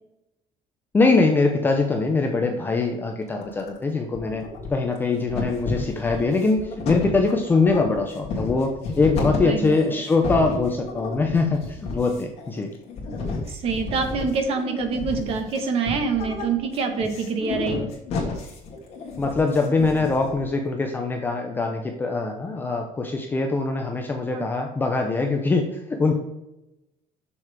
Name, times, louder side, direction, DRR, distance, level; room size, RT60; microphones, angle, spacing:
voice 1, 0.9-12.7 19.2-26.2, left 3 dB, 15° left, 3 dB, 0.5 m, -23 dB
sound 1, 3.3-3.8 4.1-5.0 5.3-20.5, left 3 dB, 50° left, 2.4 m, -32 dB
voice 2, 13.5-17.8 24.3-24.4, right 5 dB, 45° right, 6 dB, 1.2 m, -26 dB
6.9 x 6.5 x 3.3 m, 0.92 s
cardioid pair, 175°, 13 cm